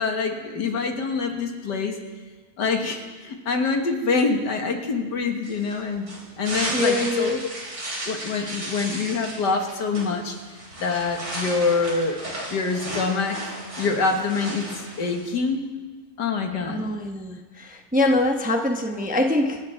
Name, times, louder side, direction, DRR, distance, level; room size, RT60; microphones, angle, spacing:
voice 1, 0.0-2.0 2.6-6.1 6.4-7.4 8.1-10.4 10.8-12.2 12.5-14.7 15.0-15.7 16.2-16.9, left 4 dB, 90° left, 3 dB, 2.1 m, -25 dB
sound 1, 5.4-15.3, right 1 dB, 75° right, 4.3 m, -34 dB
voice 2, 6.7-7.4 16.7-19.6, left 1 dB, 10° right, 3 dB, 0.6 m, -24 dB
26.5 x 11.0 x 3.4 m, 1.4 s
omnidirectional pair, 1.8 m